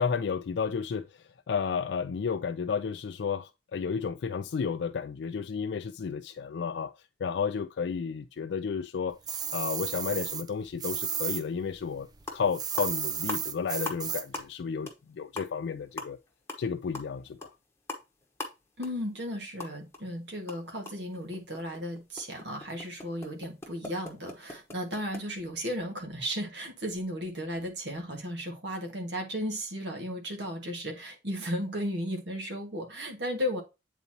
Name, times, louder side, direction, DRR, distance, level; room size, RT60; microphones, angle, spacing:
voice 1, 0.0-6.9 7.2-9.2 9.5-16.2 16.6-17.5, left 6 dB, 70° left, 0.3 m, -32 dB
sound 1, 9.3-11.4 11.7-14.4, right 8 dB, 20° right, 0.4 m, -33 dB
sound 2, 11.9-12.0 12.2-12.5 12.8-14.0 14.3-14.6 14.9-15.0 15.3-20.0 20.3-25.2, left 2 dB, 15° left, 1.0 m, -41 dB
voice 2, 18.8-33.6, equal, 70° right, 1.6 m, -35 dB
8.2 x 4.1 x 2.8 m
head